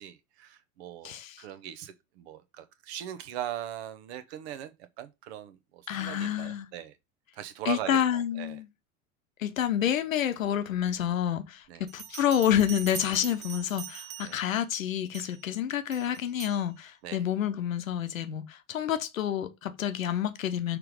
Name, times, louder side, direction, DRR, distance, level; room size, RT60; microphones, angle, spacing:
voice 1, 0.0-7.0 7.3-8.6 11.7-11.9 14.2-14.4 17.0-17.2, right 11 dB, 50° right, 1.0 m, -40 dB
voice 2, 1.0-1.4 5.9-6.7 7.6-8.7 9.4-20.8, left 10 dB, 65° left, 1.0 m, -29 dB
Bell, 11.9-14.6 15.1-15.4 15.9-16.6, right 9 dB, 20° right, 0.4 m, -43 dB
6.0 x 3.3 x 5.0 m
figure-of-eight pair, 85°, 43 cm